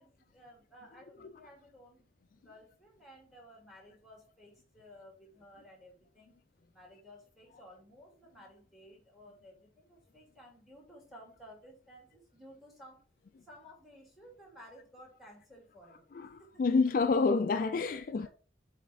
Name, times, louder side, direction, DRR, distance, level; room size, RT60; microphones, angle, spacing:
voice 1, 0.0-2.1 2.3-6.4 6.7-13.1 13.4-16.6 17.9-18.3, equal, ahead, 2.4 m, -56 dB
voice 2, 16.1-18.3, left 4 dB, 45° left, 0.3 m, -28 dB
7.3 x 4.2 x 3.5 m
head